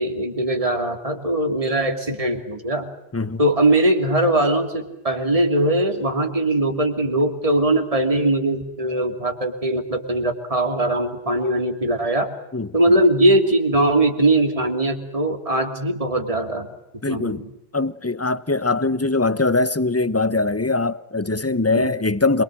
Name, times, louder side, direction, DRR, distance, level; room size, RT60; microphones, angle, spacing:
voice 1, 0.0-2.9 3.4-12.3 12.7-16.7 17.1-17.5 21.7-21.9, right 1 dB, 35° right, 2.9 m, -20 dB
voice 2, 17.0-17.5 17.7-22.4, left 3 dB, 15° left, 0.9 m, -22 dB
27.5 x 23.0 x 7.7 m
omnidirectional pair, 1.1 m